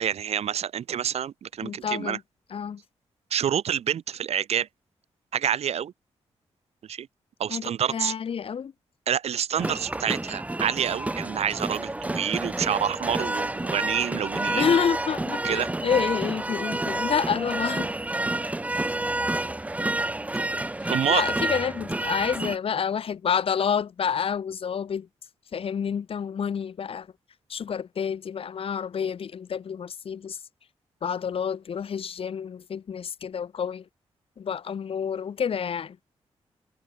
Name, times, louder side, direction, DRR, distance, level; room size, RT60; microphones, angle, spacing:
voice 1, 0.0-2.2 3.3-4.7 5.3-5.9 6.9-7.1 7.4-8.1 9.1-14.8 15.4-15.7 20.9-21.2, right 9 dB, 75° right, 6.0 m, -27 dB
voice 2, 1.6-2.2 2.5-2.8 7.5-8.7 14.5-17.9 20.8-25.1 25.5-27.1 27.5-30.4 31.0-33.8 34.4-36.0, left 7 dB, 60° left, 4.6 m, -28 dB
sound 1, 9.6-22.6, right 2 dB, 15° right, 2.2 m, -29 dB
cardioid pair, 105°, 11 cm